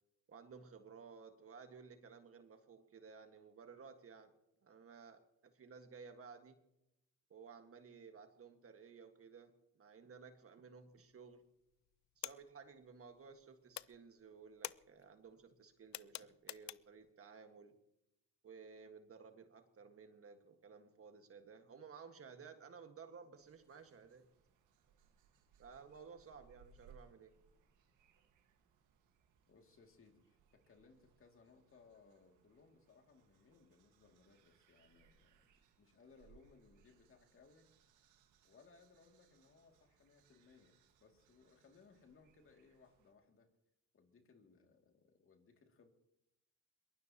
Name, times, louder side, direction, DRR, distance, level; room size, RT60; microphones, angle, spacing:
voice 1, 0.3-4.3 4.6-6.6 7.3-11.4 12.1-17.8 18.4-24.3 25.6-27.3, right 5 dB, 50° right, 7 dB, 1.7 m, -56 dB
sound 1, 10.9-11.4 11.7-13.4 13.7-17.1, left 16 dB, 65° left, 0.4 m, -49 dB
sound 2, 23.3-43.1, right 6 dB, 90° right, 1.7 m, -70 dB
voice 2, 29.5-35.5 35.8-37.7 38.4-43.5 43.9-45.9, left 4 dB, 45° left, 3 dB, 2.5 m, -66 dB
22.5 x 19.0 x 2.9 m, 0.84 s
cardioid pair, 90°, 30 cm